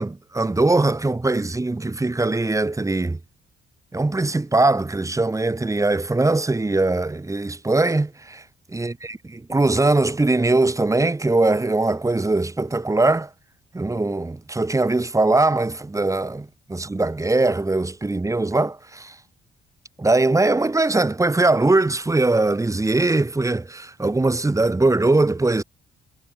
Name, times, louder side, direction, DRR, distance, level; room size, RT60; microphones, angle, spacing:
voice 1, 0.0-3.2 3.9-8.4 8.7-13.3 13.7-19.1 20.0-25.6, right 2 dB, 15° right, 1.9 m, -21 dB
cardioid pair, 90°, 20 cm